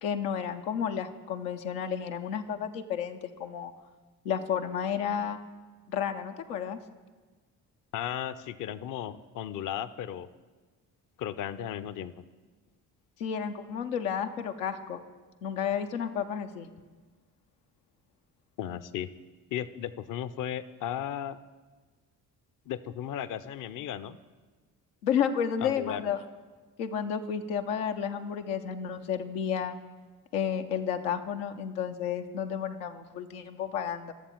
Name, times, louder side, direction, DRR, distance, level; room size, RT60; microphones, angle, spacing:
voice 1, 0.0-3.7 4.2-5.4 5.9-6.8 13.2-15.0 15.4-16.7 25.0-26.2 26.8-29.8 30.3-34.1, left 8 dB, 85° left, 5 dB, 0.7 m, -31 dB
voice 2, 7.9-10.3 11.2-12.2 18.6-19.1 19.5-21.4 22.7-24.2 25.6-26.0, left 10 dB, 45° left, 14 dB, 0.6 m, -35 dB
13.0 x 7.0 x 4.4 m, 1.3 s
hypercardioid pair, 45°, 46 cm